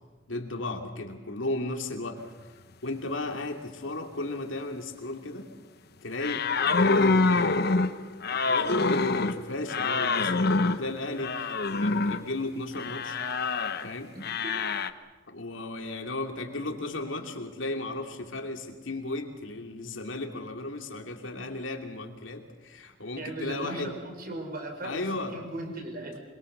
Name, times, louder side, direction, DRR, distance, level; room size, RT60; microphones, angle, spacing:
voice 1, 0.3-2.2 2.8-5.5 6.0-7.6 8.3-13.2 13.8-14.1 15.3-23.9 24.8-25.4, left 2 dB, 90° left, 3 dB, 2.8 m, -35 dB
sound 1, 6.2-12.3 12.7-13.9 14.2-14.9, left 3 dB, 55° left, 1.0 m, -26 dB
voice 2, 23.1-25.1 25.3-26.2, right 2 dB, 50° right, 3 dB, 4.8 m, -37 dB
26.0 x 23.0 x 6.8 m, 1.2 s
head